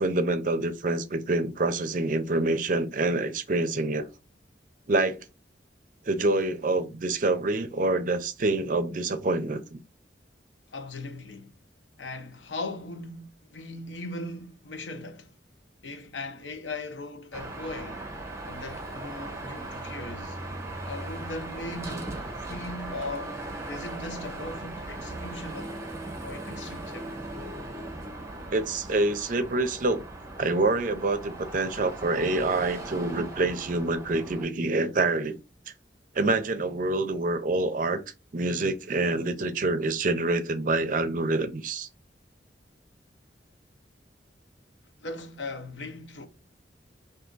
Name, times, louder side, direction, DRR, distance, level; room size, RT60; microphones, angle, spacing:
voice 1, 0.0-4.1 4.9-5.2 6.1-9.8 28.5-30.1 30.4-35.4 36.1-38.0 38.3-41.9, right 2 dB, 45° right, 0.6 m, -26 dB
voice 2, 10.7-11.5 12.0-15.3 15.8-18.1 18.4-20.4 20.8-23.4 23.7-25.8 26.2-27.1 45.0-46.3, left 2 dB, 85° left, 0.8 m, -39 dB
Car passing by / Traffic noise roadway noise / Engine, 17.3-34.4, right 2 dB, 15° right, 0.8 m, -38 dB
3.5 x 2.7 x 3.8 m
head